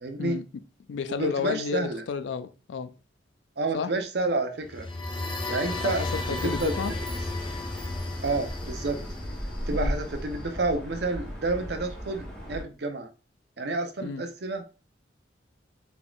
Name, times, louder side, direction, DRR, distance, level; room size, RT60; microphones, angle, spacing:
voice 1, 0.0-0.4 1.2-2.0 3.6-4.9 5.5-6.0 6.3-6.8 8.2-9.0 9.7-13.1 13.6-14.6, right 3 dB, 65° right, 0.6 m, -29 dB
voice 2, 0.9-2.9 3.7-3.9 5.8-6.9 9.7-10.0 14.0-14.2, left 6 dB, 80° left, 0.4 m, -32 dB
sound 1, 4.6-10.4, left 2 dB, 25° left, 0.6 m, -34 dB
sound 2, 5.9-12.6, equal, 5° left, 1.1 m, -36 dB
3.9 x 3.6 x 2.3 m
head